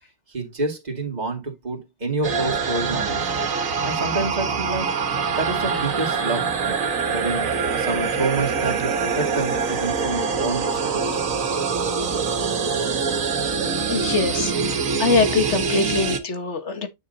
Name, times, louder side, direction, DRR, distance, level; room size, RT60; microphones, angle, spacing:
voice 1, 0.3-3.3 3.8-5.0 5.2-6.8 7.1-7.4 7.7-11.3, right 3 dB, 30° right, 2.5 m, -28 dB
sound 1, 2.2-16.2, right 5 dB, 85° right, 1.7 m, -24 dB
voice 2, 13.9-16.9, left 4 dB, 60° left, 1.6 m, -23 dB
10.0 x 5.5 x 2.7 m
omnidirectional pair, 1.4 m